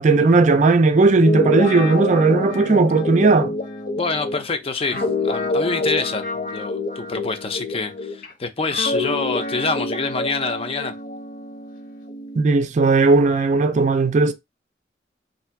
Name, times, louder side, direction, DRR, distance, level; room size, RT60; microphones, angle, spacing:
voice 1, 0.0-3.5 12.4-14.3, right 3 dB, 45° right, 0.4 m, -16 dB
Guitar, 1.1-8.3 8.7-12.4, left 2 dB, 50° left, 0.9 m, -27 dB
voice 2, 4.0-10.9, left 4 dB, 35° left, 0.5 m, -26 dB
3.3 x 2.6 x 4.5 m
head